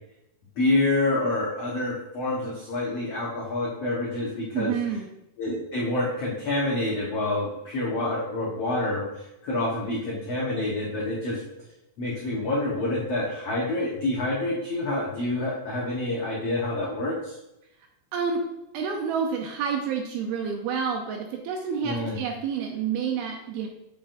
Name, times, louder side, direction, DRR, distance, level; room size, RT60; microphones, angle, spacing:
voice 1, 0.6-4.8 5.4-11.4 12.0-17.3 21.8-22.2, left 2 dB, 80° left, -5 dB, 1.4 m, -27 dB
voice 2, 4.5-5.1 18.1-18.4 18.7-23.7, right 6 dB, 80° right, 2 dB, 2.3 m, -29 dB
8.2 x 7.1 x 2.6 m, 0.87 s
omnidirectional pair, 4.9 m